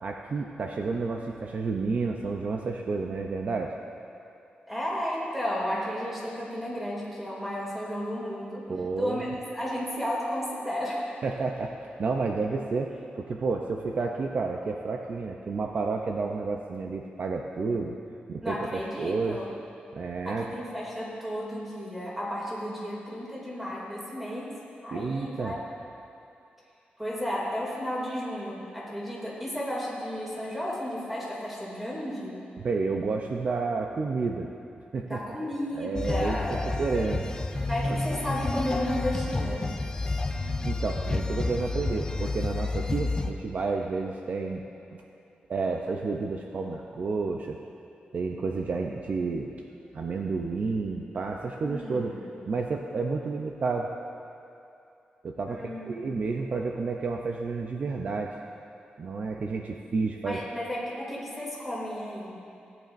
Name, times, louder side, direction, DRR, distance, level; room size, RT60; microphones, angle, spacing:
voice 1, 0.0-3.7 8.7-9.2 11.2-18.0 18.3-19.4 19.9-20.5 24.9-25.6 32.6-34.5 34.9-35.2 35.8-36.4 36.8-37.2 37.8-38.0 40.6-44.6 44.9-45.0 45.5-47.6 48.1-49.6 49.9-52.1 52.4-53.9 55.2-58.4 59.0-60.4, right 4 dB, 50° right, 2 dB, 0.5 m, -30 dB
voice 2, 4.7-8.6 9.0-11.1 18.4-19.5 20.2-24.5 24.8-25.6 27.0-32.4 35.1-36.7 37.7-39.7 51.6-52.2 55.5-56.2 60.2-62.4, equal, 5° right, -5 dB, 2.5 m, -33 dB
sound 1, 36.0-43.3, left 3 dB, 20° left, 0.5 m, -30 dB
17.5 x 9.0 x 2.6 m, 2.7 s
wide cardioid pair, 140°, 3 cm